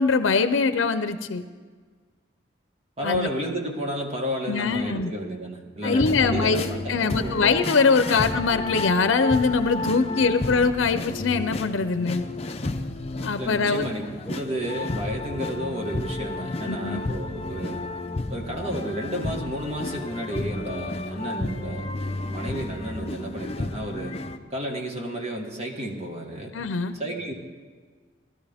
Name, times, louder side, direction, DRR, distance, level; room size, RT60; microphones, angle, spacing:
voice 1, 0.0-1.4 3.0-3.3 4.5-5.1 5.8-12.2 13.2-13.9 16.7-17.0 26.5-26.9, left 4 dB, 85° left, 10 dB, 0.6 m, -23 dB
voice 2, 3.0-7.4 8.1-8.2 10.2-10.4 13.4-17.9 18.3-21.9 22.2-24.2 24.5-26.5 26.9-27.3, equal, 30° right, 2 dB, 1.5 m, -32 dB
sound 1, 5.8-24.4, left 2 dB, 30° left, 0.5 m, -32 dB
19.0 x 12.5 x 3.5 m, 1.5 s
head